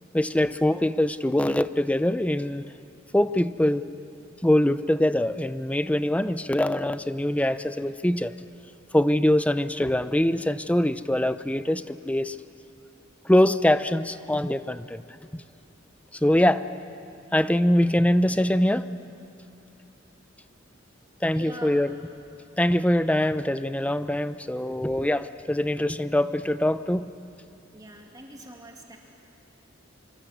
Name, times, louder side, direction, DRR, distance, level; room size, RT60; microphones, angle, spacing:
voice 1, 0.1-2.6 3.1-3.8 4.4-8.3 8.9-12.4 13.2-15.0 15.3-15.4 16.2-16.7 17.3-18.8 21.2-21.9 22.6-27.1, left 1 dB, 5° left, 13 dB, 0.6 m, -23 dB
voice 2, 21.3-21.8 27.7-29.0, right 1 dB, 20° right, 0 dB, 2.5 m, -43 dB
25.5 x 25.0 x 8.1 m, 2.6 s
head